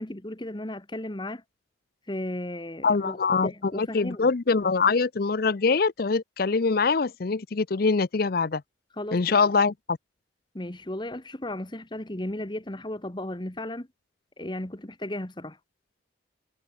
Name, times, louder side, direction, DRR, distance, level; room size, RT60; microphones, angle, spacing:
voice 1, 0.0-1.4 2.1-4.3 9.0-9.5 10.5-13.9 14.4-15.6, left 1 dB, 25° left, 1.4 m, -35 dB
voice 2, 2.8-8.6 9.1-10.0, left 4 dB, 50° left, 0.5 m, -24 dB
head